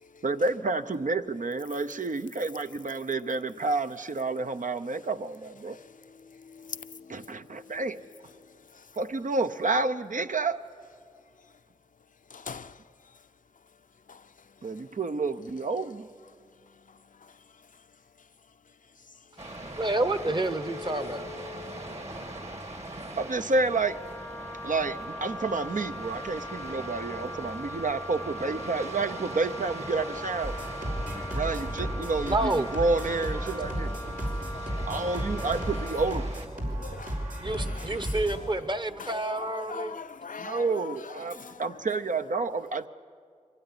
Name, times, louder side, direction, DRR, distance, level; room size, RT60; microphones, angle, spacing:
voice 1, 0.2-5.8 7.1-8.0 9.0-10.6 14.6-16.1 23.2-24.0 24.6-30.6 31.3-33.9 34.9-36.3 40.4-42.9, right 3 dB, 75° right, 0.7 m, -29 dB
voice 2, 5.6-7.8 8.3-9.0 12.3-13.2 14.1-14.9 16.6-17.9 18.2-18.3 19.0-19.3 19.7-19.8 20.5-22.7 27.1-27.7 30.9-31.2 33.1-35.4 35.7-36.2 36.6-38.7 39.0-41.9, left 5 dB, 75° left, 0.6 m, -45 dB
sound 1, 19.4-36.5, right 1 dB, 50° right, 2.3 m, -41 dB
voice 3, 19.7-21.6 32.1-32.8 34.5-34.7 37.4-40.0, right 2 dB, 35° right, 1.0 m, -29 dB
Wind instrument woodwind instrument, 23.7-36.2, equal, 10° left, 0.6 m, -41 dB
sound 2, 30.4-38.4, right 1 dB, 90° right, 4.8 m, -34 dB
23.5 x 16.5 x 9.8 m
wide cardioid pair, 65°, 14 cm